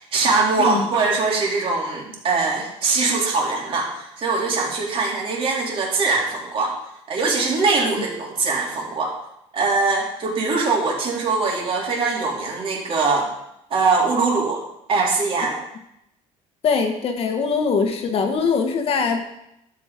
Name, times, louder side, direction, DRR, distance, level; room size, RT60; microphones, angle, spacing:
voice 1, 0.0-6.8 7.1-9.1 9.5-13.3 13.7-14.6 14.9-15.6, right 4 dB, 45° right, -2 dB, 3.7 m, -22 dB
voice 2, 16.6-19.2, left 5 dB, 45° left, 5 dB, 1.6 m, -22 dB
12.0 x 8.4 x 5.2 m, 0.81 s
cardioid pair, 145°, 13 cm